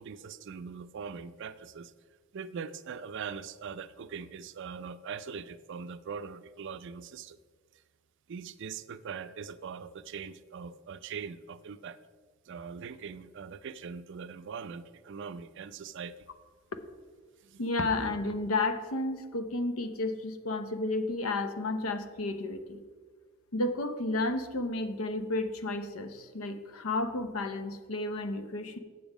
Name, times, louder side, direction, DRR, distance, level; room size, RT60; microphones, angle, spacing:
voice 1, 0.0-1.9 2.3-7.4 8.3-12.0 12.5-16.2 17.4-17.6, right 6 dB, 60° right, 14 dB, 0.4 m, -41 dB
voice 2, 17.6-22.8 23.5-28.8, left 2 dB, 90° left, 10 dB, 0.7 m, -32 dB
7.7 x 7.2 x 4.9 m, 1.4 s
head